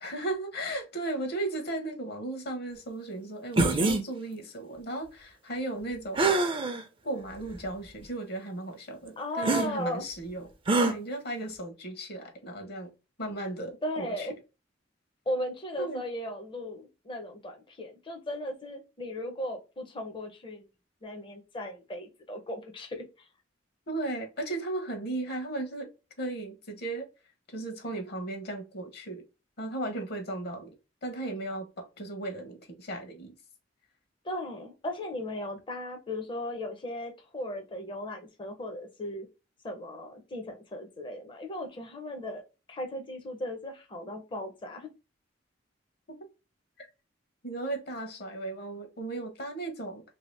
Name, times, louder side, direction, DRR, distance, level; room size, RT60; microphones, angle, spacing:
voice 1, 0.0-6.3 7.0-10.5 10.8-12.9 13.2-14.3 15.8-16.0 23.9-25.9 26.2-27.1 27.5-29.2 29.6-30.7 31.0-33.3 46.1-46.2 47.4-50.0, right 2 dB, 60° left, 0.9 m, -36 dB
sound 1, 3.6-4.0 6.2-6.8 7.5-7.6 9.4-9.7 10.7-10.9, right 2 dB, 30° right, 0.5 m, -24 dB
voice 2, 9.2-10.1 13.8-14.3 15.3-20.7 21.0-23.3 34.2-39.3 39.6-44.9, left 1 dB, 25° left, 0.6 m, -37 dB
2.8 x 2.7 x 3.1 m
head